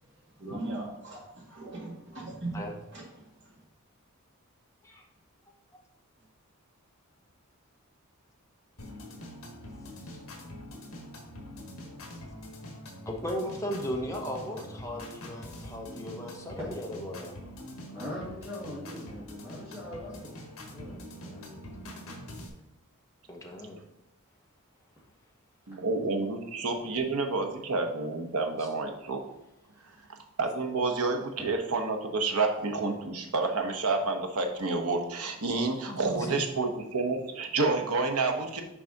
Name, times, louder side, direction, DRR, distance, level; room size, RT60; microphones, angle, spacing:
voice 1, 0.1-3.6, right 2 dB, 55° right, -4 dB, 2.3 m, -40 dB
sound 1, 8.8-22.5, left 1 dB, 75° left, 1.5 m, -44 dB
voice 2, 13.1-17.4 23.3-23.8 28.6-28.7 35.9-36.4, equal, 15° left, 0 dB, 0.9 m, -36 dB
voice 3, 17.9-21.7, left 1 dB, 15° right, -9 dB, 1.9 m, -42 dB
voice 4, 25.7-29.2 30.4-38.6, right 3 dB, 85° right, 4 dB, 1.0 m, -29 dB
6.1 x 4.8 x 4.0 m, 0.89 s
head